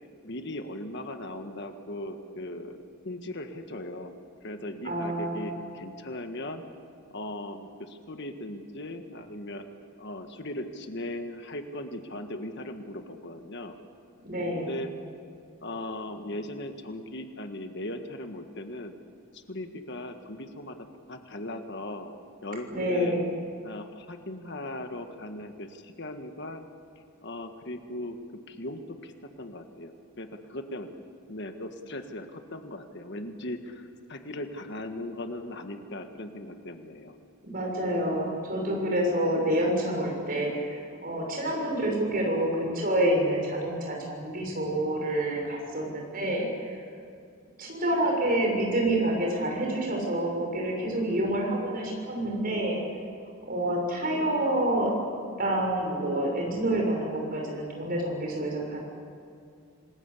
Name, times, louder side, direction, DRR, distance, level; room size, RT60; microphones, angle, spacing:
voice 1, 0.2-2.8 3.1-6.6 7.1-9.7 10.0-13.8 14.5-14.9 15.6-18.9 19.3-22.1 22.4-23.2 23.6-26.6 27.2-28.2 28.5-29.1 29.4-30.9 31.3-37.2, left 1 dB, 55° left, 6 dB, 1.6 m, -38 dB
voice 2, 4.8-5.6 14.2-14.8 22.7-23.3 37.4-46.7 47.6-52.8 53.5-54.9 55.4-58.9, right 1 dB, 40° right, 0 dB, 6.3 m, -28 dB
27.0 x 20.5 x 8.5 m, 2.4 s
head